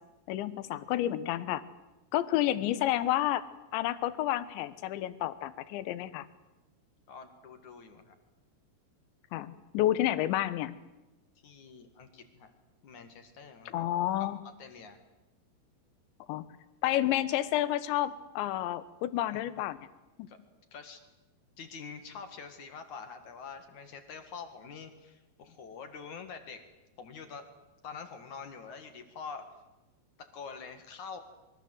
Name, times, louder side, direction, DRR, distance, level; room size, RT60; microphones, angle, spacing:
voice 1, 0.3-1.6 2.1-3.5 3.7-6.3 9.3-10.8 13.7-14.4 16.3-16.5 16.8-19.8 20.2-20.3, left 13 dB, 85° left, 14 dB, 3.4 m, -30 dB
voice 2, 7.1-8.1 11.4-12.5 12.8-13.8 14.6-15.0 19.2-19.4 20.3-20.4 20.7-21.0 21.6-26.7 27.0-27.5 27.8-29.6 30.2-31.2, left 5 dB, 55° left, 7 dB, 2.6 m, -46 dB
26.5 x 23.5 x 7.9 m, 1.0 s
omnidirectional pair, 5.2 m